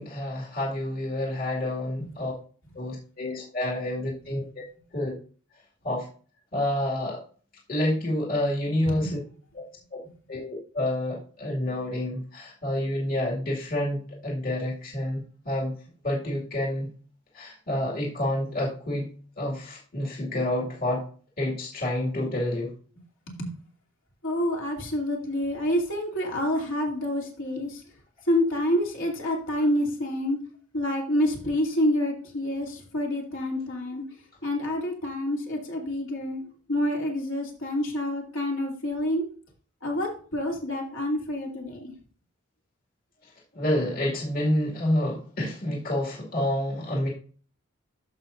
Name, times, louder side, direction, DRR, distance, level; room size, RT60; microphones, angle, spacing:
voice 1, 0.0-2.3 2.7-4.6 4.9-5.1 5.8-6.1 6.5-7.2 7.7-9.2 9.5-10.0 10.3-15.7 16.0-16.9 17.3-19.1 19.4-21.0 21.4-22.7 43.5-47.1, left 1 dB, 45° left, -3 dB, 2.3 m, -28 dB
voice 2, 24.2-27.8 28.3-30.4 30.7-34.0 34.4-36.4 36.7-39.3 39.8-41.9, left 1 dB, 70° left, -1 dB, 2.8 m, -28 dB
14.0 x 5.3 x 2.6 m, 0.41 s
head